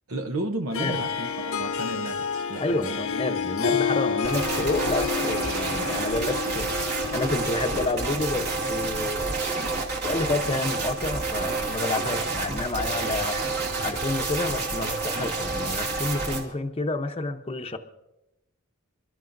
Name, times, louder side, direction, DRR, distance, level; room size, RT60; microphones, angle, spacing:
voice 1, 0.1-3.0, right 1 dB, 75° right, 5 dB, 0.9 m, -33 dB
Harp, 0.7-8.4, left 6 dB, 80° left, 0.9 m, -30 dB
voice 2, 2.6-13.5 13.8-17.8, left 2 dB, 30° left, 5 dB, 0.8 m, -29 dB
sound 1, 4.2-16.4, right 3 dB, 50° right, 2.5 m, -29 dB
27.5 x 13.0 x 2.6 m, 0.92 s
head